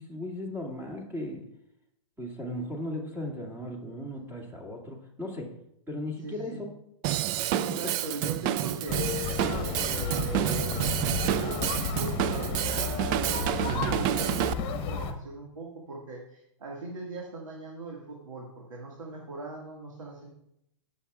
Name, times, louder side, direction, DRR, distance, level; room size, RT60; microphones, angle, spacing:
voice 1, 0.0-1.4 2.2-5.5 5.9-6.7 7.4-7.6, left 1 dB, 10° right, 0 dB, 2.2 m, -36 dB
voice 2, 6.2-6.6 7.6-10.8 11.2-20.3, right 1 dB, 80° right, -2 dB, 2.0 m, -40 dB
Drum kit / Drum, 7.0-14.5, right 13 dB, 40° right, 0.4 m, -29 dB
sound 1, 8.9-15.1, left 5 dB, 35° left, 1.2 m, -32 dB
18.0 x 7.0 x 2.4 m, 0.79 s
hypercardioid pair, 120°, 16 cm